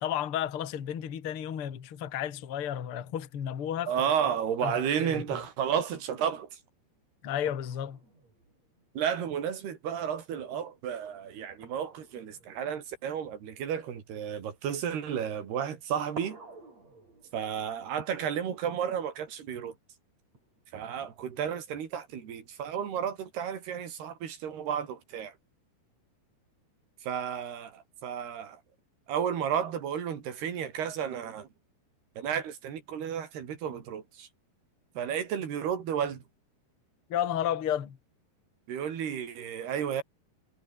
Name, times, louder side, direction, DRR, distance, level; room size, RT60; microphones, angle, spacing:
voice 1, 0.0-3.9 4.6-5.2 7.2-8.0 37.1-38.0, left 10 dB, 40° left, 2.2 m, -32 dB
voice 2, 3.9-6.5 9.0-16.4 17.3-19.7 20.7-25.3 27.0-28.6 29.1-31.5 32.2-34.3 35.0-36.2 38.7-40.0, right 8 dB, 70° right, 5.2 m, -32 dB
sound 1, 6.4-10.0 10.2-10.7 11.6-14.8 15.7-15.8 16.1-19.4 20.3-21.3, right 3 dB, 40° right, 8.9 m, -54 dB
omnidirectional pair, 4.8 m